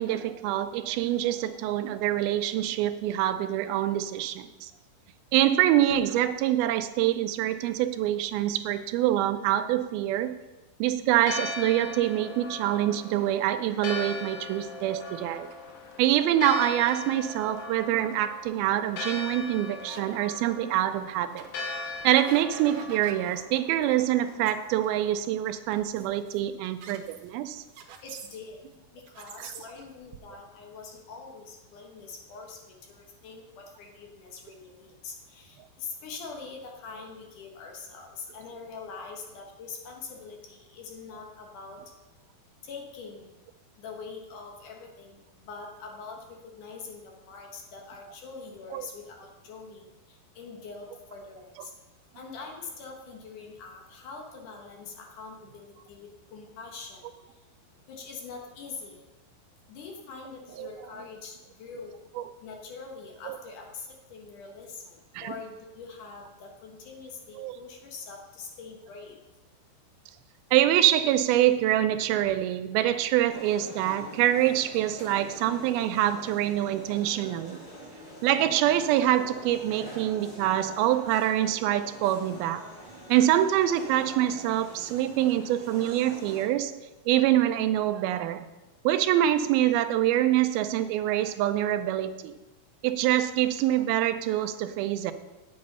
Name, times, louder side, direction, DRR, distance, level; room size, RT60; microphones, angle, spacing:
voice 1, 0.0-4.7 5.3-10.4 10.8-15.5 16.0-21.5 22.0-27.6 29.4-29.5 48.7-48.9 60.6-60.7 62.2-62.3 63.3-63.4 65.2-65.3 67.4-67.5 70.5-77.6 78.2-82.7 83.1-86.7 87.1-88.4 88.8-92.3 92.8-95.1, right 12 dB, 90° right, 10 dB, 2.5 m, -25 dB
Church bell, 11.1-25.2, left 3 dB, 90° left, 3.2 m, -39 dB
sound 1, 15.5-16.3 17.2-17.3 17.8-18.0 18.4-18.5 18.7-18.8 19.2-20.0 20.3-20.5 21.0-21.1 21.4-23.5 23.7-24.0 24.5-24.6 25.1-25.3 25.7-28.8 29.0-30.2, right 7 dB, 70° right, 2.2 m, -46 dB
voice 2, 28.0-28.6 28.9-41.8 42.6-43.3 43.8-49.9 50.4-51.7 52.2-57.1 57.9-59.0 59.7-61.9 62.4-69.2, left 4 dB, 65° left, 1 dB, 2.7 m, -43 dB
sound 2, 73.3-86.4, equal, 35° left, 3.3 m, -45 dB
9.5 x 7.9 x 5.4 m, 1.1 s
omnidirectional pair, 4.2 m